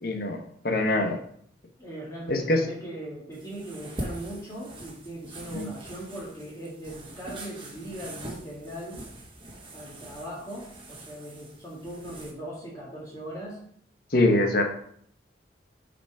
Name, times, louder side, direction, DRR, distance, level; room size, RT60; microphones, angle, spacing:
voice 1, 0.0-1.2 2.3-2.6 5.5-5.7 14.1-14.6, left 2 dB, 55° left, 4 dB, 1.2 m, -24 dB
voice 2, 1.8-9.0 9.7-13.6, right 1 dB, 20° left, -6 dB, 2.1 m, -39 dB
sound 1, 3.3-12.3, right 1 dB, 30° right, 1.6 m, -43 dB
7.0 x 5.2 x 4.8 m, 0.64 s
head